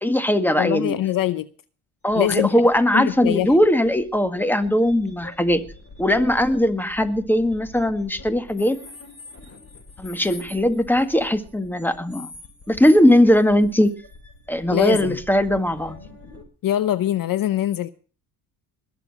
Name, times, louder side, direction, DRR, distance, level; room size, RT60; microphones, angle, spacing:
voice 1, 0.0-1.0 2.0-5.6 6.0-8.8 10.0-12.3 12.7-13.9 14.5-16.0, left 1 dB, 5° left, 1.8 m, -19 dB
voice 2, 0.6-1.5 2.1-2.5 2.9-3.5 14.7-15.2 16.6-17.9, left 12 dB, 55° left, 0.8 m, -23 dB
sound 1, 2.1-16.4, left 2 dB, 30° left, 5.7 m, -45 dB
21.0 x 7.2 x 6.0 m
supercardioid pair, 75°, 41 cm